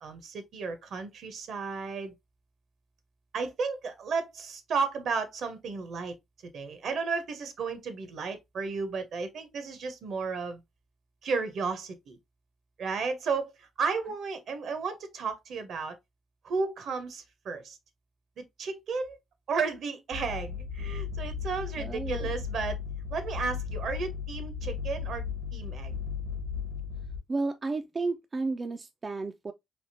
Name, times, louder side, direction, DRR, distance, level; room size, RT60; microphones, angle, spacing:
voice 1, 0.0-2.1 3.3-6.2 6.4-10.6 11.2-12.2 12.8-16.0 16.4-17.8 18.4-19.2 19.5-22.8 23.1-25.2 25.5-25.9, right 5 dB, 65° right, 0.8 m, -33 dB
sound 1, 20.1-27.2, left 6 dB, 85° right, 1.3 m, -35 dB
voice 2, 21.8-22.3 27.3-29.5, right 3 dB, 30° right, 0.3 m, -32 dB
3.4 x 2.8 x 2.6 m
cardioid pair, 90°, 0 cm